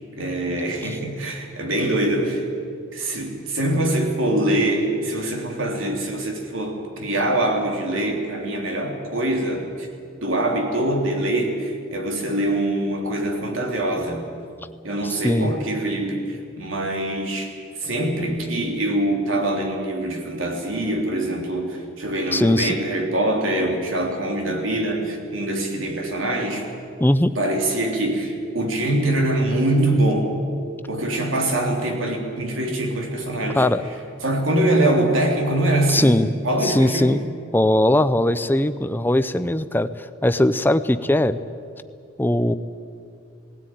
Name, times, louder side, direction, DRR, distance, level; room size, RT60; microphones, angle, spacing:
voice 1, 0.2-2.4 2.9-9.9 10.2-14.3 14.8-17.5 17.8-26.7 27.3-30.3 30.9-33.6 34.2-36.2 36.4-37.2, right 1 dB, 85° right, 2 dB, 3.4 m, -23 dB
voice 2, 15.0-15.5 22.3-22.8 27.0-27.3 33.5-33.8 35.9-36.3 36.6-37.2 37.5-41.4 42.2-42.5, left 1 dB, 10° left, 11 dB, 0.6 m, -20 dB
18.5 x 16.5 x 9.3 m, 2.4 s
head